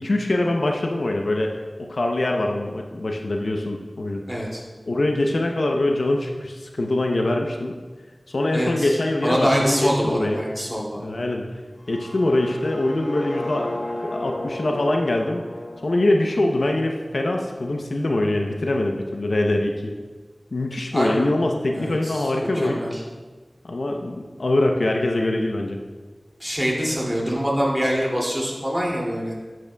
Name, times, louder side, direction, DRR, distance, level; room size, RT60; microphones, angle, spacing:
voice 1, 0.0-1.5 1.8-4.2 4.9-7.7 8.3-10.4 11.0-11.6 11.9-13.7 14.0-15.4 15.8-19.9 20.5-22.8 23.6-25.8, left 1 dB, 80° left, 2 dB, 0.7 m, -23 dB
voice 2, 4.3-4.6 8.5-8.9 9.2-11.0 20.9-21.2 21.7-22.2 22.5-23.0 26.4-29.4, equal, 5° right, -3 dB, 2.4 m, -24 dB
sound 1, 11.8-17.7, left 1 dB, 60° left, 1.0 m, -35 dB
10.5 x 7.7 x 2.3 m, 1.4 s
wide cardioid pair, 45°, 0 cm